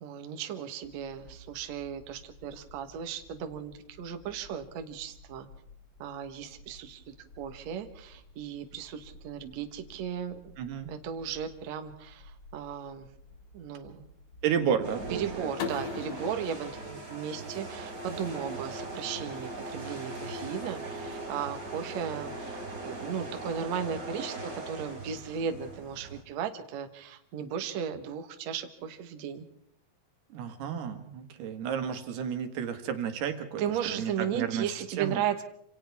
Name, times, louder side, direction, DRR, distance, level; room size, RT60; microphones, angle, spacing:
voice 1, 0.0-5.5 6.0-10.6 10.9-13.1 13.5-14.1 15.1-29.4 33.6-35.4, right 8 dB, 55° right, 6 dB, 2.2 m, -36 dB
sound 1, 0.8-15.4, left 1 dB, 20° left, 4.6 m, -54 dB
voice 2, 10.6-10.9 14.4-15.5 30.3-35.2, right 8 dB, 85° right, 6 dB, 3.8 m, -32 dB
sound 2, 14.8-26.2, right 2 dB, 20° right, 4.0 m, -40 dB
sound 3, 15.6-18.4, left 7 dB, 75° left, 3.5 m, -40 dB
27.5 x 27.0 x 3.5 m, 0.70 s
omnidirectional pair, 4.5 m